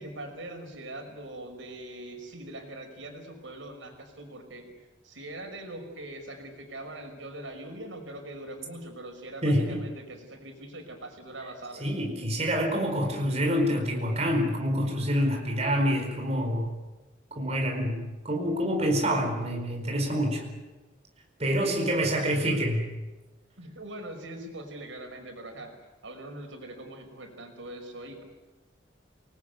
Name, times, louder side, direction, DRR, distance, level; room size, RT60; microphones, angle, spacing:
voice 1, 0.0-11.9 21.5-22.7 23.6-25.8 26.0-28.2, right 1 dB, 90° right, 5 dB, 5.6 m, -42 dB
voice 2, 9.4-9.8 11.8-16.7 17.3-20.5 21.4-22.9, equal, 35° right, 2 dB, 4.7 m, -27 dB
28.0 x 20.0 x 9.4 m, 1.2 s
head